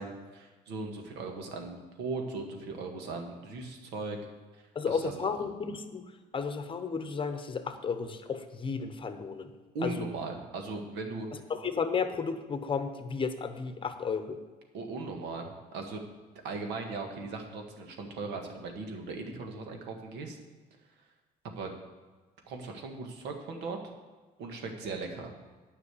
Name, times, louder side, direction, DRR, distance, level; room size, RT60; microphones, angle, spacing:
voice 1, 0.0-4.2 4.9-5.3 9.7-11.3 14.7-16.0 16.4-20.4 21.6-21.7 22.5-23.8 24.4-25.3, right 3 dB, 85° right, 3 dB, 1.7 m, -38 dB
voice 2, 4.7-6.1 6.3-9.5 9.8-9.9 11.3-14.4, left 5 dB, 30° left, 8 dB, 1.0 m, -33 dB
9.8 x 5.8 x 8.4 m, 1.3 s
cardioid pair, 110°, 17 cm